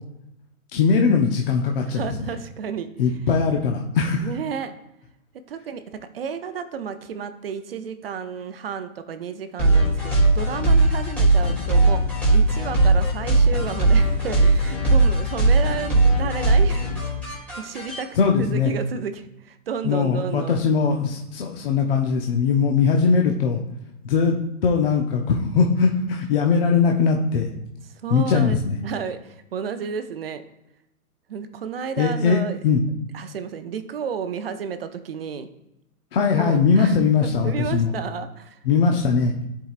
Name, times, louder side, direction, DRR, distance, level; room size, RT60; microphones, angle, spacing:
voice 1, 0.7-2.3 3.0-4.3 18.2-18.7 19.8-23.6 24.0-24.4 24.6-27.5 28.1-28.8 32.0-32.8 36.1-37.9 38.6-39.3, left 5 dB, 40° left, 1 dB, 0.6 m, -20 dB
voice 2, 1.8-3.4 4.2-4.7 5.5-12.0 12.3-16.9 17.6-18.1 18.4-20.6 28.0-30.4 31.3-32.6 33.1-35.5 36.2-38.6 38.9-39.0, right 6 dB, 45° right, 10 dB, 0.5 m, -32 dB
sound 1, 9.6-18.0, right 2 dB, 5° left, 2.4 m, -19 dB
9.9 x 4.6 x 2.4 m, 0.87 s
hypercardioid pair, 155°, 43 cm